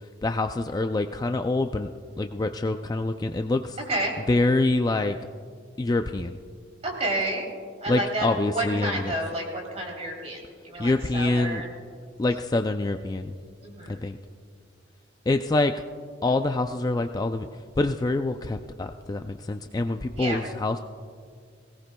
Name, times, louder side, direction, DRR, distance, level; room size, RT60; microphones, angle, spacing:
voice 1, 0.2-1.9 2.2-3.8 4.3-5.2 5.8-6.4 7.9-9.1 10.8-11.6 12.2-13.3 13.9-14.2 15.3-15.8 16.2-17.5 17.8-20.8, left 2 dB, 20° left, 7 dB, 0.3 m, -25 dB
voice 2, 6.8-7.5 7.8-11.7 13.6-14.0 20.1-20.4, right 1 dB, 35° right, -1 dB, 3.2 m, -30 dB
21.0 x 18.0 x 2.2 m, 2.1 s
head